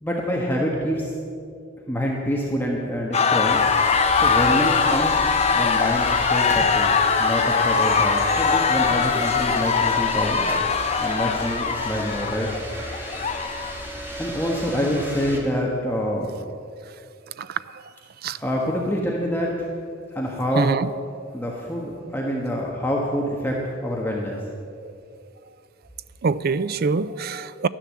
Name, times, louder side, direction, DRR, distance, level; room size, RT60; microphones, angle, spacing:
voice 1, 0.0-1.1 1.9-3.6 4.1-5.2 5.5-10.5 11.0-12.5 14.2-16.3 18.4-19.6 20.1-20.8 21.3-24.4, equal, 10° left, -3 dB, 1.3 m, -26 dB
sound 1, 3.1-13.8, left 5 dB, 35° left, 0.6 m, -21 dB
sound 2, 3.5-15.4, equal, 10° right, 2.2 m, -33 dB
voice 2, 20.6-20.9 26.2-27.7, right 4 dB, 50° right, 15 dB, 0.4 m, -24 dB
12.5 x 10.0 x 7.5 m, 2.4 s
head